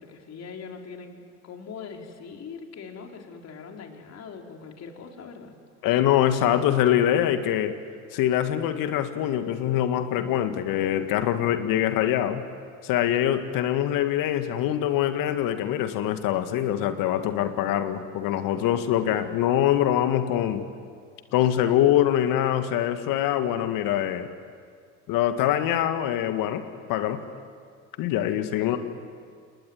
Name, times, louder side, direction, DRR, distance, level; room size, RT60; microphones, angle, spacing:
voice 1, 0.0-5.5 28.6-28.8, left 5 dB, 40° left, 2 dB, 4.3 m, -41 dB
voice 2, 5.8-7.7 8.1-12.4 12.8-20.6 21.3-24.3 25.1-26.6 26.9-27.2 28.0-28.8, left 11 dB, 60° left, 9 dB, 2.0 m, -24 dB
28.5 x 20.0 x 9.5 m, 2.2 s
hypercardioid pair, 70°, 38 cm